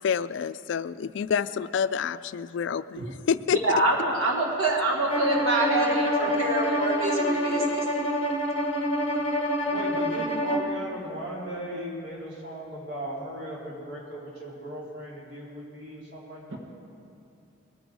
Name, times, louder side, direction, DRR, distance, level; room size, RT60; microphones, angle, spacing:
voice 1, 0.0-3.0 3.3-3.6, left 7 dB, 60° left, 14 dB, 0.3 m, -27 dB
voice 2, 3.6-7.8 16.5-16.6, right 2 dB, 85° right, 0 dB, 1.5 m, -26 dB
Bowed string instrument, 5.1-10.7, equal, 30° left, 1.2 m, -26 dB
voice 3, 9.7-16.6, equal, 55° right, -5 dB, 3.6 m, -37 dB
21.0 x 9.2 x 4.8 m, 2.6 s
head